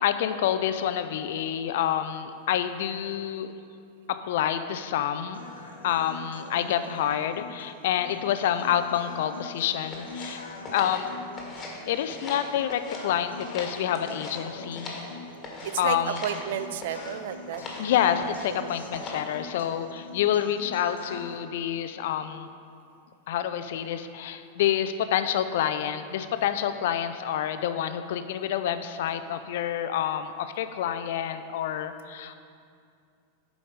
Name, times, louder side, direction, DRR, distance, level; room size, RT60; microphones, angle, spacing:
voice 1, 0.0-3.5 4.1-5.4 5.8-10.4 10.7-11.1 11.9-14.9 15.8-16.2 17.8-22.5 23.3-32.4, left 10 dB, 55° left, 10 dB, 0.4 m, -28 dB
sound 1, 5.3-21.3, left 3 dB, 75° left, 1.0 m, -44 dB
sound 2, 9.9-11.8 12.1-13.0 13.3-15.1 15.4-15.8 16.1-16.5 16.8-17.1 17.5-17.9 18.2-18.6 18.9-19.3, left 2 dB, 25° left, 1.5 m, -40 dB
voice 2, 15.6-17.6 18.5-18.7, right 10 dB, 55° right, 12 dB, 0.3 m, -32 dB
7.6 x 5.2 x 5.1 m, 2.3 s
figure-of-eight pair, 90°, 0 cm